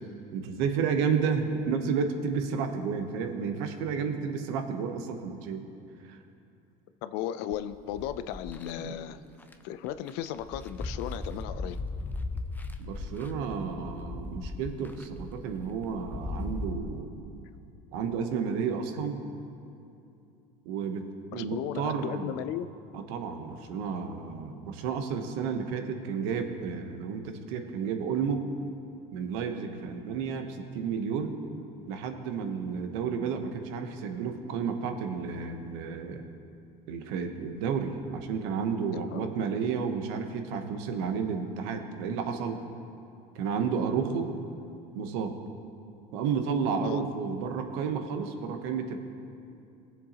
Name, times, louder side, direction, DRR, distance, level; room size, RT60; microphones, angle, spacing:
voice 1, 0.3-5.7 6.1-6.2 8.8-8.9 12.8-17.1 17.9-19.2 20.7-22.3 22.9-28.4 29.1-31.4 31.9-36.2 36.9-42.6 43.3-44.3 44.9-45.4 46.1-49.0, right 6 dB, 85° right, 6 dB, 1.0 m, -31 dB
voice 2, 7.0-9.2 9.6-11.8 21.3-22.7 38.9-39.4 46.8-47.0, left 11 dB, 75° left, 12 dB, 0.5 m, -36 dB
sound 1, 7.5-8.7 9.4-9.5 9.9-16.7, left 2 dB, 10° left, 0.5 m, -38 dB
18.0 x 7.2 x 2.9 m, 2.7 s
supercardioid pair, 105°, 17 cm